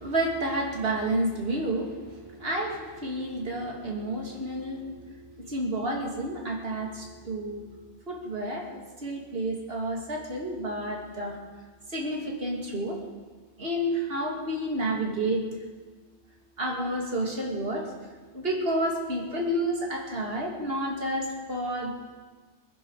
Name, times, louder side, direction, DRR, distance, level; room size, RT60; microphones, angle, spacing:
voice 1, 0.0-11.4 11.9-13.0 13.6-15.6 16.6-17.9 18.3-22.0, right 1 dB, 50° right, 0 dB, 2.9 m, -30 dB
23.5 x 10.5 x 5.0 m, 1.3 s
omnidirectional pair, 1.3 m